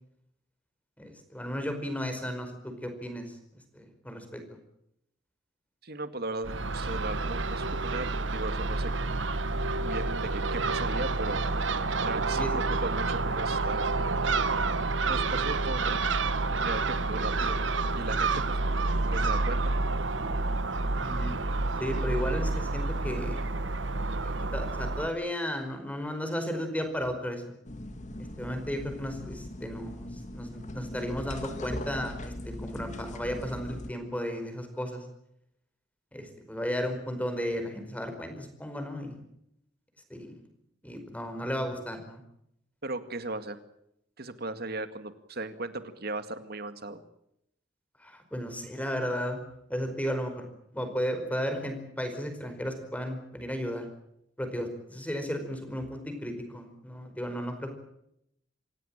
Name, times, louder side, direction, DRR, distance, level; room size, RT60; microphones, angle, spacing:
voice 1, 1.0-3.4 3.7-4.6 12.3-12.5 21.0-21.4 21.8-23.4 24.5-27.4 28.4-35.0 36.1-39.2 40.1-40.3 40.8-42.2 48.0-49.4 49.7-50.4 50.7-53.8 54.4-57.7, equal, 10° left, 6 dB, 5.0 m, -34 dB
voice 2, 5.8-9.3 9.8-11.4 12.1-13.9 15.1-16.0 16.6-17.6 17.9-18.6 19.1-19.7 42.8-43.6 44.2-47.0, right 2 dB, 55° right, 10 dB, 2.2 m, -37 dB
Crow / Gull seagull, 6.4-25.1, right 3 dB, 85° right, 1.3 m, -29 dB
sound 1, 27.6-33.9, left 1 dB, 40° left, 2.3 m, -40 dB
26.5 x 17.0 x 8.9 m, 0.77 s
head